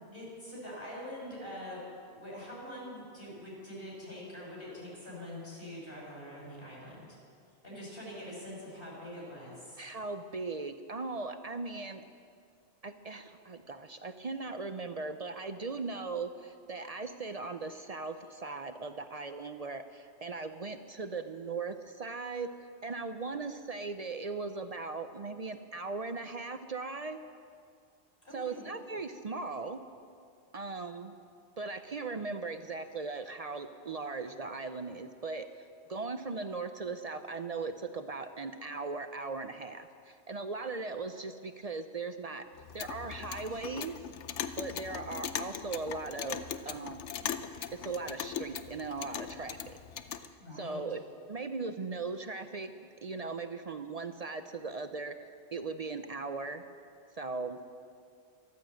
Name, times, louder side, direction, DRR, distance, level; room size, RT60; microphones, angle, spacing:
voice 1, 0.0-1.8 2.1-7.2 7.6-9.8 28.2-28.7 50.4-50.8, left 1 dB, 50° left, -5 dB, 5.9 m, -44 dB
voice 2, 9.8-12.0 12.8-22.5 22.8-27.2 28.3-29.8 30.5-31.2 31.6-35.5 35.9-42.5 42.7-43.9 44.6-47.2 47.8-49.8 50.6-51.0 51.3-55.2 55.5-56.6 57.2-57.7, right 3 dB, 45° right, 9 dB, 0.5 m, -38 dB
Clock, 42.6-50.3, left 8 dB, 80° left, 1.0 m, -40 dB
14.0 x 12.5 x 7.8 m, 2.3 s
omnidirectional pair, 1.2 m